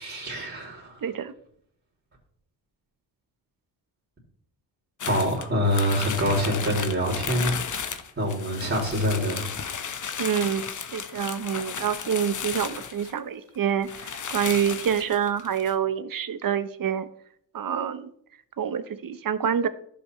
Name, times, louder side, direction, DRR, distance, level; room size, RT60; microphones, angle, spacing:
voice 1, 0.0-1.1 5.1-7.5 7.9-9.5, equal, 30° right, -5 dB, 3.1 m, -26 dB
voice 2, 1.0-1.3 10.2-10.6 10.9-17.1 17.5-18.1 18.6-19.7, right 8 dB, 50° right, 13 dB, 0.9 m, -27 dB
sound 1, 5.0-13.2 13.5-13.6 13.8-15.7, left 6 dB, 45° left, 1.0 m, -34 dB
11.5 x 7.1 x 3.1 m, 0.67 s
supercardioid pair, 60°, 43 cm